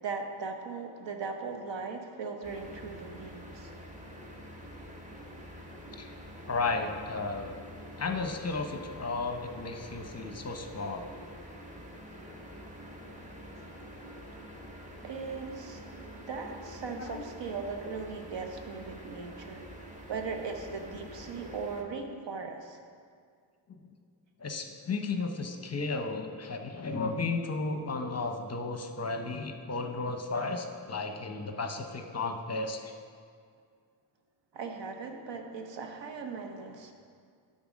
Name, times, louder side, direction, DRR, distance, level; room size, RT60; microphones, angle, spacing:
voice 1, 0.0-3.7 15.0-15.8 16.3-19.6 20.1-22.8 34.5-36.9, right 4 dB, 65° right, 4 dB, 1.0 m, -38 dB
sound 1, 2.4-21.8, equal, 15° right, 1.1 m, -47 dB
voice 2, 6.5-7.6 8.0-11.1 17.0-17.2 23.7-23.9 24.4-32.9, left 3 dB, 35° left, 5 dB, 0.7 m, -34 dB
sound 2, 12.2-17.5, left 1 dB, 45° right, 1.3 m, -58 dB
10.0 x 4.0 x 6.2 m, 2.1 s
cardioid pair, 70°, 47 cm